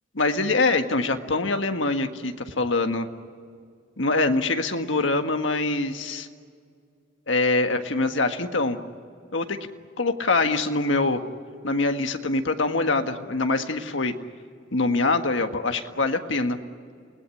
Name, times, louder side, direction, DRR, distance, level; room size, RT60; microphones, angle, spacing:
voice 1, 0.1-3.1 4.0-6.3 7.3-8.8 9.3-9.7 10.0-11.2 11.6-14.1 14.7-16.6, left 3 dB, 75° left, 6 dB, 1.6 m, -24 dB
28.5 x 19.0 x 9.9 m, 2.2 s
head